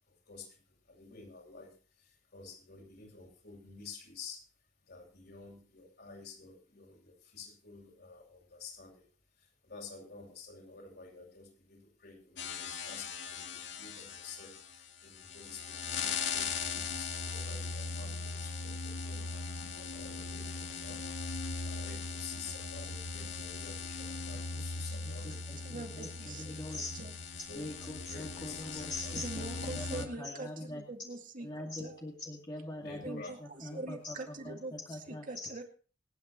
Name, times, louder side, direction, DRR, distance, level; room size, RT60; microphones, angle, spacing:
voice 1, 0.0-4.4 4.8-9.0 9.4-21.0 21.3-26.1 27.4-27.7 28.1-29.1 29.5-29.6 29.9-30.0 32.8-33.3 33.7-33.8, left 5 dB, 60° left, -1 dB, 7.9 m, -51 dB
sound 1, 12.4-30.1, left 4 dB, 75° left, 2.0 m, -39 dB
voice 2, 24.1-26.9 27.6-30.8 31.4-35.5, left 2 dB, 25° left, -1 dB, 2.2 m, -43 dB
voice 3, 24.9-27.1 29.2-32.0 33.0-35.6, right 2 dB, 45° right, 3 dB, 2.3 m, -44 dB
26.5 x 9.5 x 3.1 m, 0.39 s
head